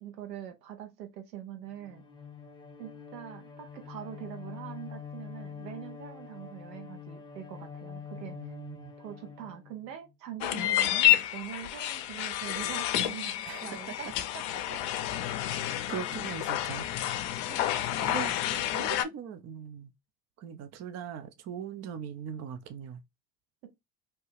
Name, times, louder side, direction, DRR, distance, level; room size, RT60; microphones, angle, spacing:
voice 1, 0.0-2.0 2.8-8.5 9.0-13.4 13.6-14.8 15.2-15.4 17.4-17.7 18.0-19.0 23.6-23.7, right 10 dB, 80° right, 1.0 m, -44 dB
Bowed string instrument, 1.7-10.1, left 7 dB, 10° left, 0.8 m, -45 dB
voice 2, 8.2-8.9 13.5-14.0 15.5-16.9 18.0-18.3 18.8-19.9 20.4-23.0, right 8 dB, 35° right, 0.5 m, -40 dB
sound 1, 10.4-19.0, left 13 dB, 55° left, 0.6 m, -29 dB
2.8 x 2.2 x 3.2 m
hypercardioid pair, 70°, 49 cm